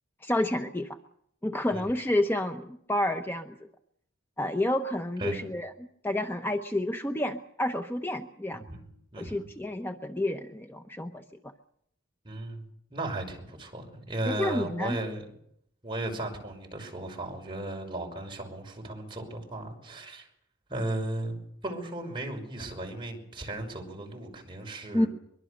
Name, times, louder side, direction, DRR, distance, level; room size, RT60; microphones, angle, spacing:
voice 1, 0.2-0.9 1.4-3.5 4.4-5.7 6.0-8.6 9.2-11.5 14.3-15.0 24.9-25.1, left 1 dB, 10° left, 6 dB, 0.9 m, -29 dB
voice 2, 8.5-8.9 9.1-9.4 12.2-15.2 15.8-20.3 20.7-25.1, right 2 dB, 25° right, 1 dB, 5.8 m, -36 dB
23.5 x 22.5 x 6.7 m, 0.72 s
head